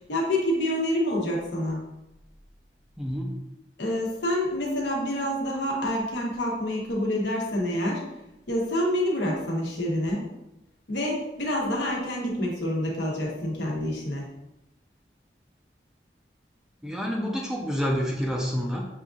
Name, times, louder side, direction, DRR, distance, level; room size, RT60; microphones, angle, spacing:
voice 1, 0.1-1.9 3.8-8.0 8.5-10.2 10.9-14.3, left 1 dB, 85° left, -1 dB, 1.1 m, -27 dB
voice 2, 3.0-3.4 16.8-18.9, equal, 5° right, -1 dB, 0.5 m, -28 dB
6.7 x 2.6 x 2.4 m, 0.91 s
head